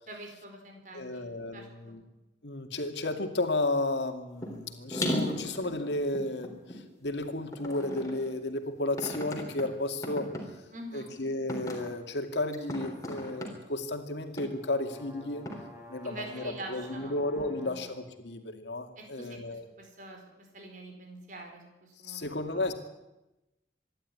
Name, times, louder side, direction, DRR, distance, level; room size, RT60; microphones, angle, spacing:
voice 1, 0.1-2.0 10.7-11.1 16.0-17.9 19.0-22.7, right 2 dB, 45° right, 3 dB, 4.5 m, -46 dB
voice 2, 0.9-2.0 2.4-10.3 10.9-15.5 15.9-19.6 22.0-22.7, left 2 dB, 80° left, 5 dB, 2.4 m, -33 dB
sound 1, 4.4-4.6 4.9-6.8 7.5-8.3 9.0-9.6 10.0-10.4 11.1-11.2 11.5-11.9 12.5-13.5 14.4-14.5 15.5-15.6, left 1 dB, 20° left, 3.8 m, -35 dB
sound 2, 14.2-18.1, left 1 dB, 10° right, 5.2 m, -50 dB
25.5 x 11.5 x 9.7 m, 1.0 s
head